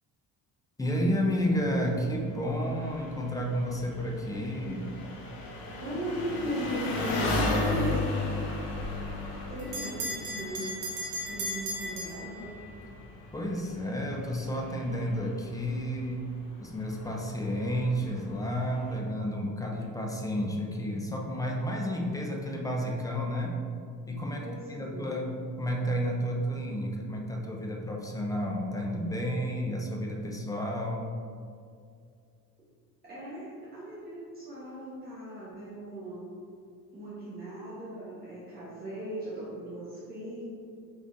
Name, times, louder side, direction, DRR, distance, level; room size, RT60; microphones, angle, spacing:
voice 1, 0.8-4.9 13.3-23.6 24.1-31.1, equal, 10° left, 0 dB, 0.3 m, -31 dB
Engine, 0.9-19.0, left 2 dB, 70° left, 1.0 m, -37 dB
voice 2, 5.8-8.0 9.5-12.5 24.4-25.2 33.0-36.3 36.9-40.5, equal, 25° right, -10 dB, 1.2 m, -37 dB
Bell, 8.8-12.9, equal, 60° right, 0.9 m, -37 dB
4.0 x 3.7 x 3.5 m, 2.3 s
cardioid pair, 155°, 35 cm